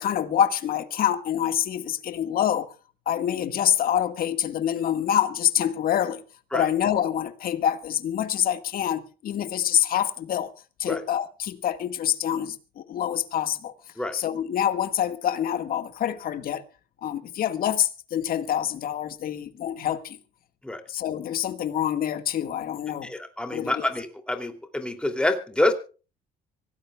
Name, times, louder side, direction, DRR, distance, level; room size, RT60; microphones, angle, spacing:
voice 1, 0.0-2.7 3.1-6.2 6.5-10.5 10.8-13.7 14.1-16.6 17.0-20.2 20.9-23.1 23.5-23.9, left 10 dB, 60° left, 1.8 m, -26 dB
voice 2, 23.0-25.7, left 1 dB, 5° left, 2.9 m, -27 dB
25.0 x 17.5 x 2.4 m
cardioid pair, 110°, 17 cm